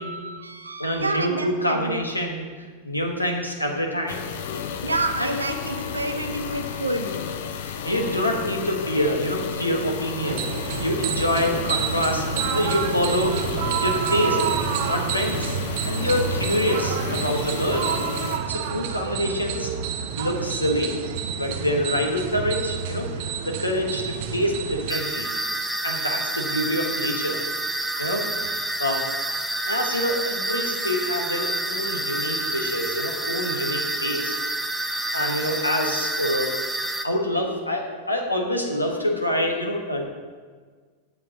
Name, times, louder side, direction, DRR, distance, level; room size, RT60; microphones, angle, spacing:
voice 1, 0.0-2.0 4.8-7.1 12.3-13.4 27.9-28.1, right 2 dB, 80° right, 6 dB, 0.8 m, -30 dB
voice 2, 0.8-2.5 2.8-4.2 5.2-5.3 7.6-10.5 10.8-14.5 14.8-15.6 15.9-17.9 18.5-19.7 20.2-21.0 21.4-25.3 25.8-27.4 28.0-29.1 29.6-34.3 34.8-36.6 37.0-40.1, left 1 dB, 85° left, 2 dB, 1.3 m, -26 dB
sound 1, 4.1-18.4, left 7 dB, 55° left, 0.7 m, -32 dB
sound 2, 10.3-24.9, right 8 dB, 50° right, 0.6 m, -28 dB
sound 3, 24.9-37.1, right 1 dB, ahead, 0.6 m, -28 dB
7.8 x 6.0 x 6.9 m, 1.6 s
figure-of-eight pair, 90°, 0 cm